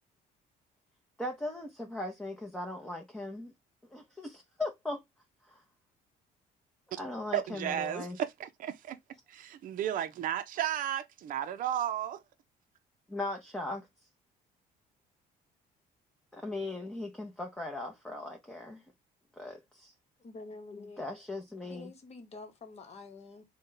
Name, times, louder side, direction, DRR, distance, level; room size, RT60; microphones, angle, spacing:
voice 1, 1.2-3.5 3.9-5.0 5.5-5.6 7.0-8.2 13.1-13.9 16.3-18.8 19.4-19.9 21.0-21.9, left 2 dB, 5° left, 0.7 m, -38 dB
voice 2, 7.3-9.0 9.3-12.2, right 10 dB, 55° right, 0.5 m, -34 dB
voice 3, 20.2-21.1 21.7-23.4, left 3 dB, 40° left, 1.0 m, -47 dB
3.9 x 2.3 x 3.7 m
cardioid pair, 110°, 17 cm